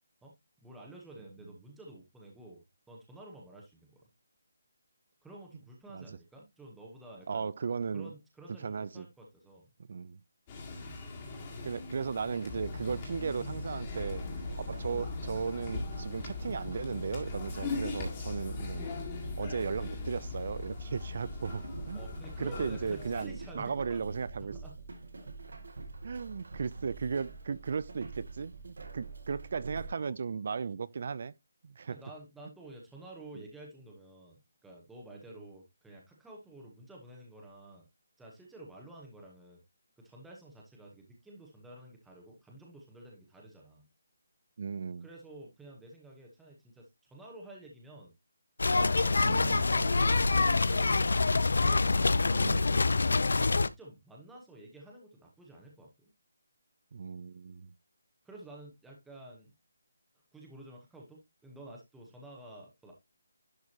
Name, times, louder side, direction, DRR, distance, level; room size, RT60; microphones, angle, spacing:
voice 1, 0.2-4.0 5.2-7.5 7.9-9.7 12.9-13.0 21.9-24.0 24.4-25.7 30.0-30.2 31.9-37.9 38.2-39.6 40.0-43.9 45.0-48.1 48.6-51.3 51.6-52.5 53.3-56.1 58.2-59.5 60.3-62.9, right 1 dB, 5° right, 1.0 m, -51 dB
voice 2, 7.3-8.1 8.6-9.1 9.9-10.2 11.6-14.2 14.7-18.9 19.4-22.0 22.4-24.5 26.0-31.3 31.6-32.0 44.6-45.1 49.2-49.7 52.4-52.8 56.9-57.7, right 5 dB, 40° right, 0.3 m, -36 dB
sound 1, 10.5-23.3, left 3 dB, 20° left, 1.8 m, -40 dB
sound 2, 13.8-29.9, right 3 dB, 70° right, 1.8 m, -46 dB
sound 3, 48.6-53.7, left 3 dB, 75° left, 0.5 m, -26 dB
10.5 x 4.6 x 2.8 m
hypercardioid pair, 175°, 0 cm